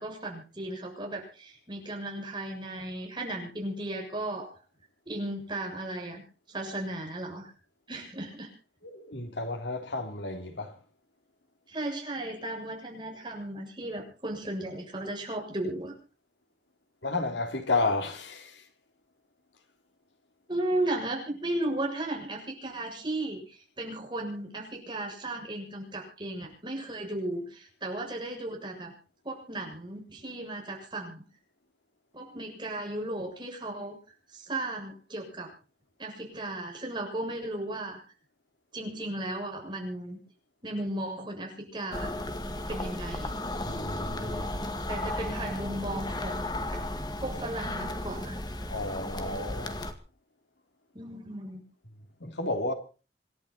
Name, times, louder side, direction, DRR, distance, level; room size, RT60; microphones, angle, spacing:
voice 1, 0.0-4.5 5.1-7.5 7.9-8.5 11.7-15.9 20.5-28.9 29.2-31.2 32.1-34.0 34.3-35.5 36.0-38.0 38.7-40.2 40.6-42.1 42.7-43.3 44.9-46.5 47.2-48.4 50.9-51.6, right 1 dB, 25° right, 7.1 m, -35 dB
voice 2, 8.9-10.7 17.0-18.6 43.6-44.5 48.7-49.8 52.2-52.7, left 3 dB, 90° left, 3.0 m, -32 dB
sound 1, 41.9-49.9, left 1 dB, 25° left, 1.9 m, -34 dB
26.5 x 11.5 x 4.1 m
head